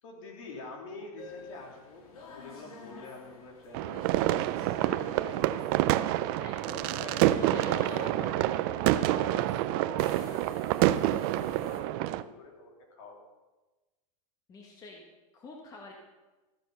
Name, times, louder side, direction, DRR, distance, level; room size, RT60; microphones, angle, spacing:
voice 1, 0.0-5.1 6.7-13.2, left 3 dB, 60° left, 1 dB, 3.4 m, -46 dB
sound 1, 1.2-11.8, left 4 dB, 80° left, 2.9 m, -51 dB
sound 2, 3.7-12.2, right 14 dB, 40° right, 0.4 m, -27 dB
voice 2, 6.4-6.9 7.2-8.0 14.5-15.0 15.3-15.9, left 2 dB, 20° left, 0 dB, 1.3 m, -45 dB
14.0 x 9.2 x 5.5 m, 1.2 s
supercardioid pair, 155°, 18 cm